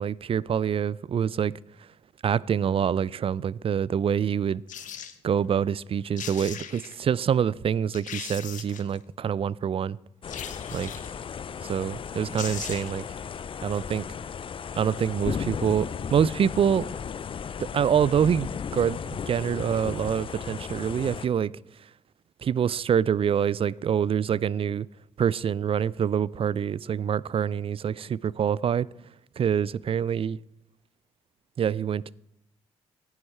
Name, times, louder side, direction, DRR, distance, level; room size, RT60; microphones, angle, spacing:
voice 1, 0.0-1.5 1.8-1.9 2.2-4.6 5.2-10.0 10.7-10.9 11.6-13.0 13.6-14.0 14.8-16.8 17.6-21.5 21.8-21.9 22.4-24.9 25.2-28.9 29.4-30.4 31.6-32.1, right 8 dB, 40° right, 0.4 m, -26 dB
sound 1, 4.7-5.2 5.9-6.0 6.2-7.0 7.5-7.6 7.9-9.0 10.3-11.2 12.0-12.1 12.3-13.1 13.4-13.5, left 9 dB, 55° left, 1.1 m, -39 dB
sound 2, 10.2-21.3, left 7 dB, 35° left, 0.5 m, -35 dB
15.0 x 9.5 x 4.4 m
hypercardioid pair, 45°, 15 cm